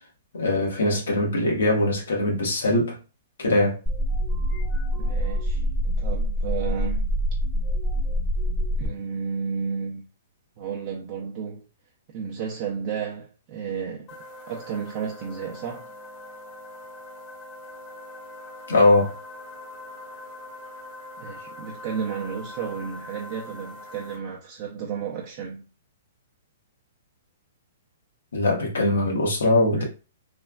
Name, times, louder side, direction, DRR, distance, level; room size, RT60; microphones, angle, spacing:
voice 1, 0.3-3.0 3.4-3.8 18.7-19.1 28.3-29.8, left 2 dB, 80° left, 1.1 m, -21 dB
sound 1, 3.9-8.9, equal, 5° left, 0.6 m, -25 dB
voice 2, 5.0-7.2 8.8-10.0 10.6-11.6 12.1-14.2 14.5-15.9 21.2-25.7 29.7-29.8, right 6 dB, 40° right, 0.5 m, -32 dB
sound 2, 14.1-24.2, left 1 dB, 30° left, 1.0 m, -42 dB
3.2 x 2.3 x 2.3 m
hypercardioid pair, 130°, 0 cm